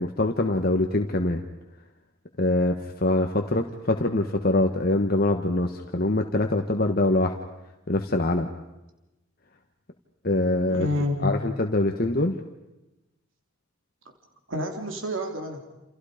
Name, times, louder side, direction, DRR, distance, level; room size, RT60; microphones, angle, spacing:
voice 1, 0.0-1.4 2.4-7.4 7.9-8.5 10.2-10.9 11.2-12.4, left 2 dB, 45° left, 4 dB, 1.4 m, -24 dB
voice 2, 10.7-11.4 14.5-15.6, left 1 dB, 70° right, 3 dB, 3.4 m, -28 dB
29.5 x 29.0 x 5.1 m, 0.98 s
head